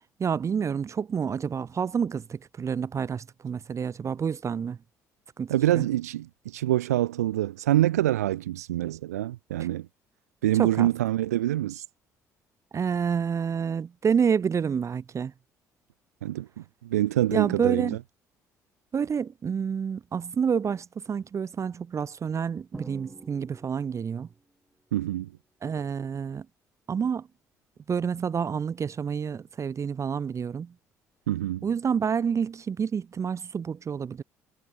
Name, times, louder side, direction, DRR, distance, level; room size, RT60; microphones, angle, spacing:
voice 1, 0.2-4.8 5.4-5.9 10.6-10.9 12.7-15.3 17.3-18.0 18.9-24.3 25.6-26.5 26.9-27.3 27.9-30.7 31.6-34.2, right 6 dB, 35° right, 0.7 m, -28 dB
voice 2, 5.5-9.9 10.4-11.8 16.2-16.5 16.8-18.0 24.9-25.3 31.3-31.7, right 14 dB, 80° right, 0.6 m, -25 dB
Drum, 22.7-24.4, right 1 dB, 10° right, 3.2 m, -47 dB
figure-of-eight pair, 50°, 8 cm